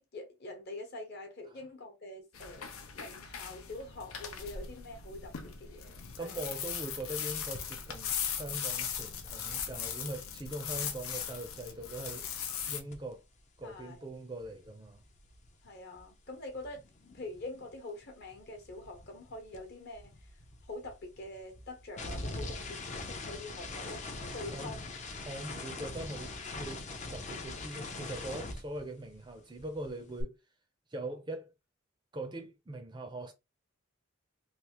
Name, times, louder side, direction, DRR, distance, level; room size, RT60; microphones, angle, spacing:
voice 1, 0.0-6.4 13.6-14.0 15.6-16.8 17.1-20.3 20.7-24.8, left 2 dB, 50° left, 1.0 m, -45 dB
sound 1, 2.3-12.8, left 7 dB, 80° left, 0.6 m, -39 dB
voice 2, 6.2-12.3 12.7-13.2 13.6-15.0 24.5-24.8 25.2-30.4 30.9-31.5 32.1-33.3, right 1 dB, 20° right, 0.5 m, -42 dB
sound 2, 12.9-13.1 13.4-17.8 18.0-29.3 29.6-30.2, left 2 dB, 35° left, 0.6 m, -43 dB
3.4 x 2.5 x 2.9 m
head